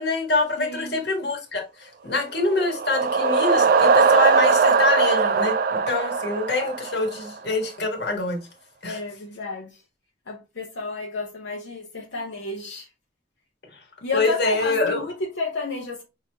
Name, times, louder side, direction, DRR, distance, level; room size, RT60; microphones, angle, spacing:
voice 1, 0.0-8.4 8.8-9.0 14.1-15.0, left 3 dB, 60° left, 1.4 m, -25 dB
voice 2, 0.6-1.0 8.8-9.8 10.3-12.9 14.0-16.0, left 3 dB, 80° left, 0.9 m, -31 dB
sound 1, 2.4-7.3, right 5 dB, 50° right, 0.4 m, -20 dB
5.7 x 3.1 x 2.8 m
head